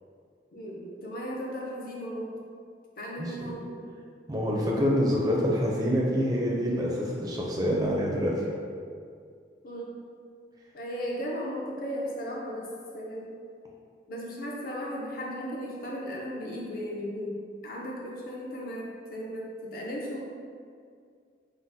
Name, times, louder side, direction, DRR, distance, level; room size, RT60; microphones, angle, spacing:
voice 1, 0.5-2.3 3.0-3.9 9.6-10.0 10.7-13.3 14.1-20.2, equal, 55° left, -3 dB, 0.5 m, -36 dB
voice 2, 4.3-8.5, equal, 20° right, -3 dB, 0.4 m, -26 dB
3.7 x 2.0 x 2.6 m, 2.2 s
head